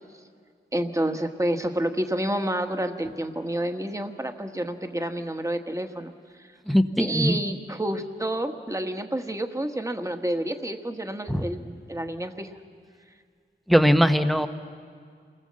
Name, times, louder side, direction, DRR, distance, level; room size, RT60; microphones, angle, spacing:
voice 1, 0.7-6.1 6.4-6.5 7.0-12.5, right 1 dB, 15° right, 6 dB, 1.5 m, -29 dB
voice 2, 6.7-7.4 11.3-11.5 13.7-14.5, equal, ahead, 9 dB, 0.9 m, -20 dB
28.0 x 19.5 x 7.6 m, 2.1 s
wide cardioid pair, 65°, 20 cm